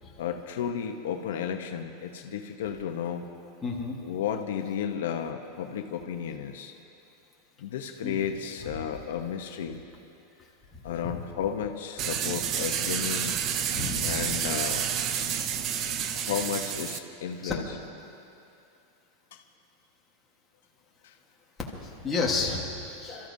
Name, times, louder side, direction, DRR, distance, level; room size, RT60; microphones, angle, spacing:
voice 1, 0.2-3.3 4.0-6.7 7.6-9.8 10.8-13.4 14.0-14.9 16.1-17.6 19.3-19.4 21.0-21.1 23.2-23.3, left 8 dB, 75° left, 5 dB, 0.8 m, -33 dB
voice 2, 3.6-4.0 8.0-8.3 10.7-11.1 13.7-14.2 17.4-17.5 21.7-23.3, left 4 dB, 10° left, -4 dB, 1.4 m, -32 dB
sound 1, 12.0-17.0, right 8 dB, 25° right, 0.5 m, -29 dB
28.0 x 13.5 x 2.7 m, 2.7 s
supercardioid pair, 175°, 0 cm